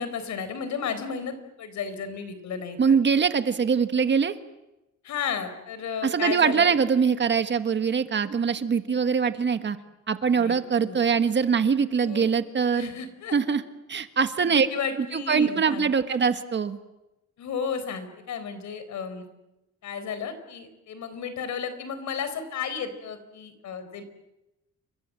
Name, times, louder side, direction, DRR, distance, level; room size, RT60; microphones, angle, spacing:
voice 1, 0.0-3.0 5.0-6.7 10.3-11.0 12.0-12.2 12.7-13.3 14.4-16.2 17.4-19.3 19.8-24.0, left 6 dB, 75° left, 11 dB, 4.4 m, -33 dB
voice 2, 2.8-4.4 6.0-9.8 10.1-12.9 13.3-13.6 13.9-14.7 15.0-16.8, right 6 dB, 40° right, 9 dB, 1.6 m, -23 dB
29.5 x 24.0 x 7.7 m, 0.95 s
cardioid pair, 140°, 29 cm